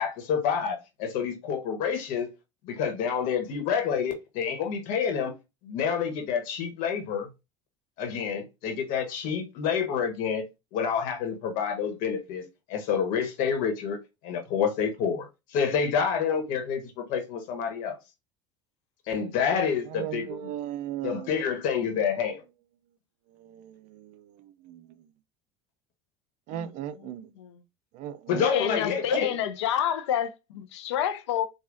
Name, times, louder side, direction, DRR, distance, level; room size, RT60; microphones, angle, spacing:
voice 1, 0.0-2.3 2.6-5.3 5.6-7.3 8.0-10.4 10.7-18.0 19.1-20.5 21.0-22.4 28.3-29.3, left 7 dB, 65° left, 1.1 m, -28 dB
voice 2, 19.9-21.3 23.4-25.0 26.5-27.3 27.9-28.8 29.1-29.3, right 12 dB, 60° right, 0.5 m, -37 dB
voice 3, 28.5-31.4, left 10 dB, 85° left, 0.5 m, -28 dB
4.6 x 2.3 x 2.5 m
supercardioid pair, 95°, 14 cm